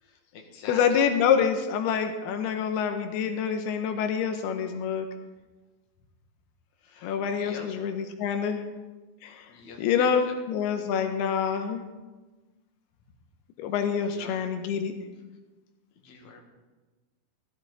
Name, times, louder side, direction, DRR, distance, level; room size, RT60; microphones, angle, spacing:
voice 1, 0.0-0.8 6.8-7.7 9.5-10.1 14.0-14.4 16.0-16.4, left 5 dB, 55° left, 1 dB, 2.6 m, -45 dB
voice 2, 0.7-5.1 7.0-8.6 9.2-9.5 9.8-11.8 13.6-14.9, left 7 dB, 85° left, 6 dB, 2.8 m, -26 dB
15.5 x 12.5 x 4.0 m, 1.2 s
omnidirectional pair, 4.5 m